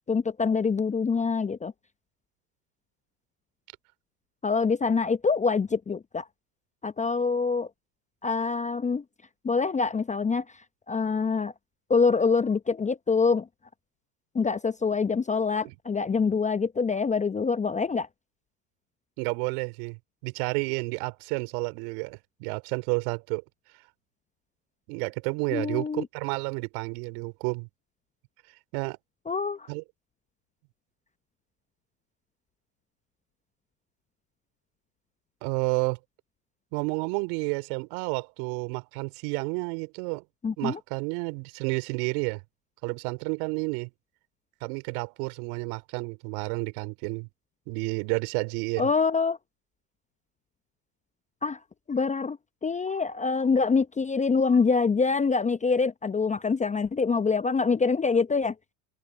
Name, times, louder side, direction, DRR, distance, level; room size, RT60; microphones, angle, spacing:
voice 1, 0.1-1.7 4.4-6.2 6.8-7.7 8.2-9.0 9.4-10.4 10.9-11.5 11.9-13.5 14.3-18.1 25.5-26.1 29.3-29.7 40.4-40.8 48.8-49.4 51.4-51.6 51.9-52.4 52.6-58.5, left 4 dB, 15° left, 0.8 m, -25 dB
voice 2, 19.2-23.4 24.9-27.7 28.7-29.0 29.7-29.8 35.4-36.0 36.7-40.2 40.6-42.4 42.8-43.9 44.6-47.3 47.7-48.9, right 33 dB, 60° right, 3.4 m, -31 dB
open air
hypercardioid pair, 90°, 50 cm